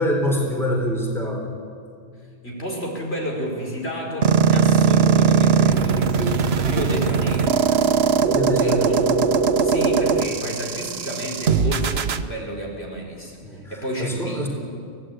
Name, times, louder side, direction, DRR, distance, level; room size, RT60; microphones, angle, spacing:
voice 1, 0.0-1.5 8.3-9.0 13.4-14.5, equal, ahead, 0 dB, 3.7 m, -25 dB
voice 2, 2.4-8.1 8.6-9.0 9.6-14.5, equal, 65° left, -1 dB, 4.9 m, -31 dB
sound 1, 4.2-12.2, right 6 dB, 70° right, 1.2 m, -19 dB
23.5 x 17.0 x 9.0 m, 2.3 s
omnidirectional pair, 1.1 m